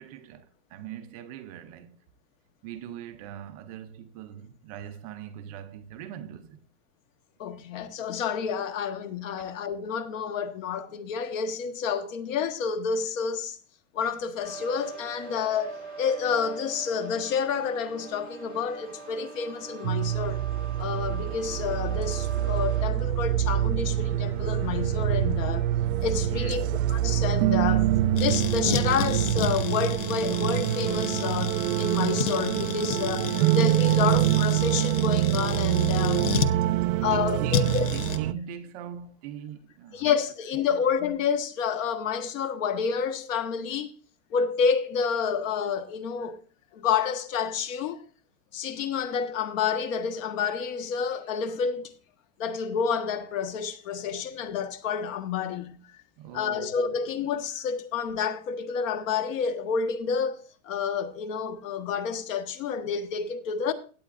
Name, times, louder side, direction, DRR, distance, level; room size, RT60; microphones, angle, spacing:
voice 1, 0.0-2.0 2.6-6.6 9.4-9.5 26.3-26.7 36.7-40.1 40.7-40.8 56.2-56.9, right 9 dB, 30° right, 0.4 m, -41 dB
voice 2, 7.4-13.6 13.9-20.4 20.8-25.7 26.0-36.4 37.0-37.9 39.9-43.9 44.3-46.4 46.7-48.0 48.5-51.9 52.4-55.8 56.3-63.7, left 6 dB, 70° left, 1.4 m, -29 dB
sound 1, 14.4-22.8, right 4 dB, 15° left, 2.6 m, -42 dB
sound 2, 19.8-38.3, right 13 dB, 75° right, 0.7 m, -25 dB
sound 3, 28.2-36.6 37.5-38.2, left 7 dB, 30° left, 0.4 m, -32 dB
17.0 x 8.4 x 2.5 m
supercardioid pair, 175°, 41 cm